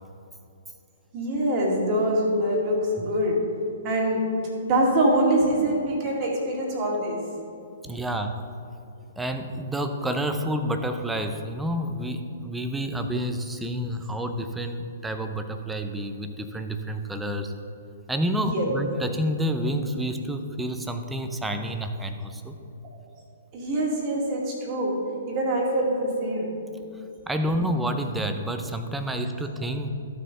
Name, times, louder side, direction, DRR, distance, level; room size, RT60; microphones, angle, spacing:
voice 1, 1.1-3.4 3.8-4.3 4.6-7.2 7.8-7.9 18.4-18.7 23.5-25.0 25.3-26.6 27.0-27.1 27.6-27.7, right 1 dB, 30° right, -2 dB, 2.1 m, -24 dB
voice 2, 7.8-8.4 9.2-17.5 18.1-22.6 27.3-29.9, equal, 5° right, 6 dB, 0.7 m, -29 dB
14.0 x 6.5 x 3.8 m, 2.6 s
figure-of-eight pair, 120°, 0 cm